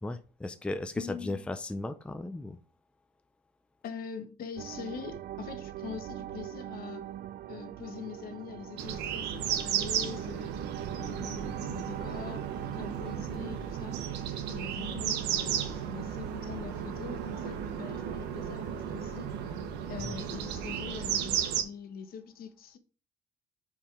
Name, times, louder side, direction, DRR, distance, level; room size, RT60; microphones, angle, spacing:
voice 1, 0.0-2.6 20.0-20.1, left 2 dB, 5° left, 0.5 m, -36 dB
voice 2, 0.9-1.4 3.8-7.1 7.5-10.5 10.9-14.0 14.5-19.3 19.9-22.8, left 7 dB, 60° left, 1.3 m, -43 dB
sound 1, 4.6-16.7, right 12 dB, 65° right, 0.5 m, -43 dB
sound 2, 8.8-21.6, right 9 dB, 85° right, 1.2 m, -34 dB
5.3 x 5.0 x 5.8 m
cardioid pair, 110°, 17 cm